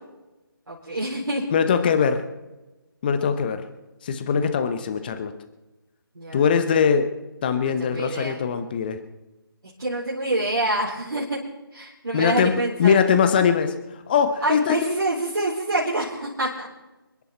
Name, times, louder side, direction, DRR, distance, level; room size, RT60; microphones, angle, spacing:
voice 1, 0.7-1.4 6.1-6.4 7.6-8.4 9.8-11.4 11.7-13.0 14.4-16.7, right 2 dB, 55° right, -7 dB, 4.3 m, -26 dB
voice 2, 1.5-2.2 3.0-3.6 4.0-5.3 6.3-7.1 7.4-9.0 12.1-13.8 14.1-14.8, left 7 dB, 25° left, 8 dB, 0.9 m, -21 dB
27.5 x 11.0 x 4.3 m, 1.1 s
figure-of-eight pair, 150°, 13 cm